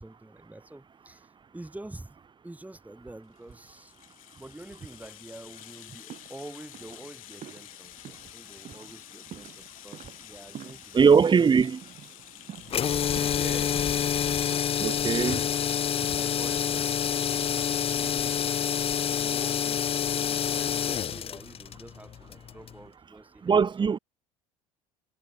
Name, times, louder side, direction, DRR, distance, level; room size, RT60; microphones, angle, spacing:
voice 1, 0.0-2.2 2.4-3.9 4.4-11.5 13.1-14.8 16.1-18.5 19.1-19.8 20.1-23.9, right 2 dB, 10° right, 3.7 m, -47 dB
Rattle (instrument), 3.2-17.4 17.7-17.8 18.1-18.2, left 17 dB, 75° left, 2.1 m, -50 dB
sound 1, 5.6-14.0, right 10 dB, 45° right, 7.9 m, -49 dB
voice 2, 10.9-11.8 14.8-15.5 23.4-24.0, right 6 dB, 25° right, 1.5 m, -21 dB
sound 2, 12.7-22.8, left 9 dB, 35° left, 0.7 m, -27 dB
hypercardioid pair, 70°, 17 cm